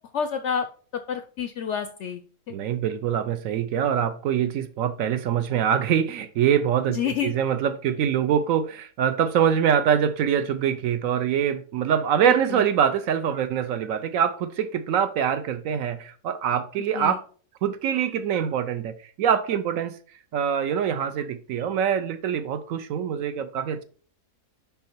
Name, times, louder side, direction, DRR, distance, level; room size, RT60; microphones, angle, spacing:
voice 1, 0.1-0.7 0.9-2.2 6.9-7.3 12.2-12.7 16.9-17.2, left 7 dB, 70° left, 0.7 m, -29 dB
voice 2, 2.5-17.2 17.6-18.9 19.2-20.0 20.3-23.8, right 8 dB, 70° right, 0.9 m, -24 dB
5.6 x 5.2 x 4.4 m
omnidirectional pair, 1.7 m